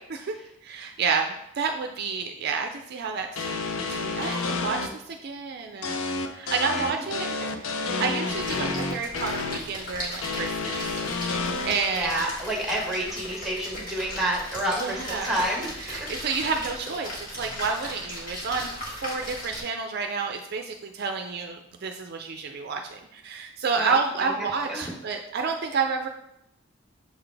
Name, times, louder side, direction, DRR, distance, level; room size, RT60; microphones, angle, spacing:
voice 1, 0.6-6.0 6.3-7.3 7.6-12.3 14.8-15.4 15.8-18.7 19.0-26.1, right 5 dB, 50° right, 4 dB, 0.4 m, -30 dB
sound 1, 3.4-4.9 5.8-9.6 10.2-11.7, left 3 dB, 80° left, 0.6 m, -29 dB
Splash splatter, 8.3-19.6, left 1 dB, 40° left, 1.9 m, -37 dB
voice 2, 11.9-15.7 23.8-23.9 24.2-24.9, right 1 dB, ahead, -2 dB, 1.3 m, -29 dB
7.0 x 4.0 x 3.4 m, 0.79 s
head